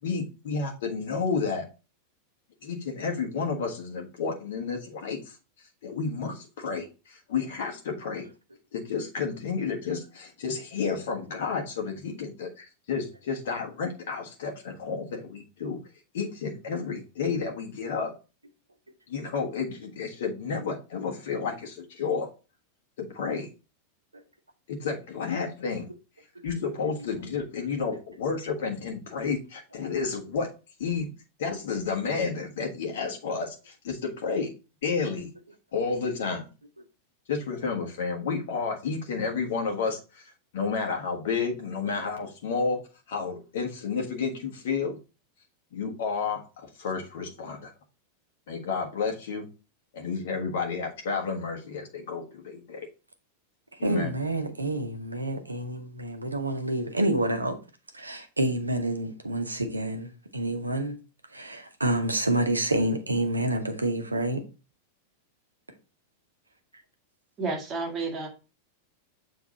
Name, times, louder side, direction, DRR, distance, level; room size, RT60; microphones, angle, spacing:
voice 1, 0.0-1.6 2.6-8.3 8.7-15.8 16.1-18.1 19.1-22.3 23.0-23.5 24.7-25.9 26.4-30.5 30.8-31.1 31.4-34.5 34.8-35.3 35.7-36.4 37.3-42.8 43.1-45.0 45.7-47.7 48.5-49.4 49.9-52.9 53.8-54.1, left 5 dB, 55° left, 1.5 m, -31 dB
voice 2, 53.8-57.6 57.9-61.0 61.3-64.4, right 1 dB, 80° right, 0.9 m, -28 dB
voice 3, 67.4-68.3, right 3 dB, 25° right, 2.0 m, -31 dB
7.1 x 3.5 x 4.1 m
figure-of-eight pair, 90°, 0 cm